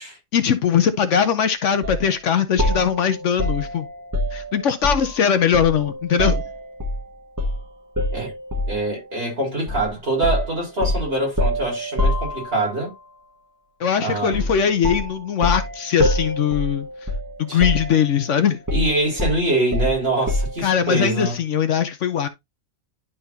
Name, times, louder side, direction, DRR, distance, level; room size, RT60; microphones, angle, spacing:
voice 1, 0.3-3.9 4.3-6.4 13.8-16.9 17.4-18.6 20.6-22.3, left 8 dB, 65° left, 1.0 m, -20 dB
sound 1, 1.8-2.0 2.6-5.2 5.5-7.0 7.4-7.6 8.0-8.9 9.7-9.9 10.2-12.8 14.3-14.6 14.8-17.3 17.6-18.2 18.7-20.7, left 1 dB, 15° right, 1.4 m, -25 dB
voice 2, 8.7-12.9 14.0-14.5 17.5-17.6 18.7-21.4, right 2 dB, 45° right, 4.0 m, -24 dB
11.0 x 4.0 x 2.7 m
omnidirectional pair, 1.4 m